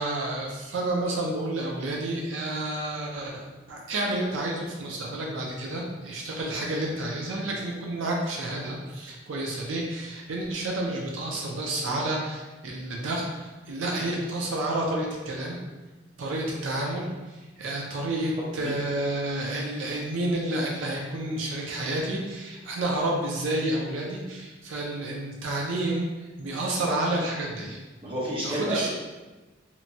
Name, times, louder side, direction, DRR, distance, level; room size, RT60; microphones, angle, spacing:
voice 1, 0.0-15.6 16.2-27.8 28.4-28.9, right 1 dB, 85° right, -1 dB, 0.4 m, -30 dB
voice 2, 18.4-18.7 28.0-28.9, right 1 dB, 30° right, -7 dB, 0.8 m, -30 dB
2.9 x 2.1 x 2.6 m, 1.2 s
head